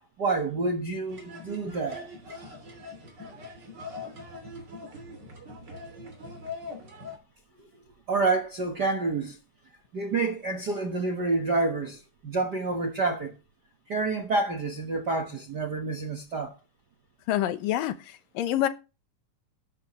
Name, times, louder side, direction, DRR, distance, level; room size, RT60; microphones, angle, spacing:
voice 1, 0.2-2.1 8.1-9.4 9.9-13.3 13.9-16.5, right 3 dB, 55° right, 1.2 m, -28 dB
sound 1, 1.1-7.2, left 3 dB, 30° right, 3.2 m, -42 dB
voice 2, 17.3-17.9 18.4-18.7, left 12 dB, 85° left, 2.6 m, -25 dB
13.0 x 11.5 x 3.1 m
omnidirectional pair, 3.9 m